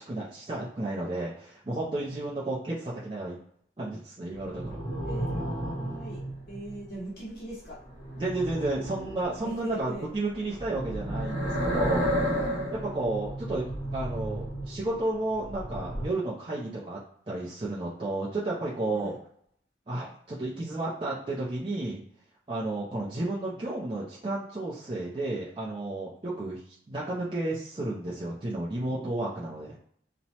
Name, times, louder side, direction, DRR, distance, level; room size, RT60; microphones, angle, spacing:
voice 1, 0.0-3.4 3.8-4.8 8.2-12.3 12.7-17.0 17.3-19.2 19.9-22.0 22.5-29.8, right 2 dB, 30° right, -7 dB, 0.4 m, -32 dB
sound 1, 4.4-6.9 7.8-9.7 10.5-15.0 15.3-16.1, equal, 75° left, 1.3 m, -32 dB
voice 2, 5.0-6.2 6.5-7.8 9.4-10.1 12.5-12.7 19.0-19.2, right 1 dB, 55° left, -6 dB, 1.0 m, -40 dB
2.9 x 2.1 x 2.8 m, 0.67 s
head